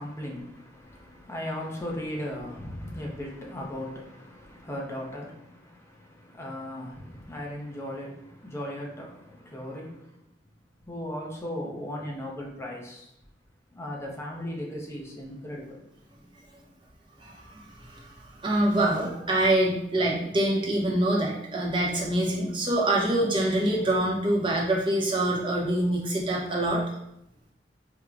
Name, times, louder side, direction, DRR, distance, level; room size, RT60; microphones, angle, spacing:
voice 1, 0.0-10.3 10.9-13.1 13.7-15.9, left 1 dB, 15° left, 0.6 m, -37 dB
voice 2, 17.2-17.5 17.8-18.1 18.4-26.8, right 1 dB, 30° right, 0.7 m, -25 dB
4.6 x 2.1 x 2.4 m
head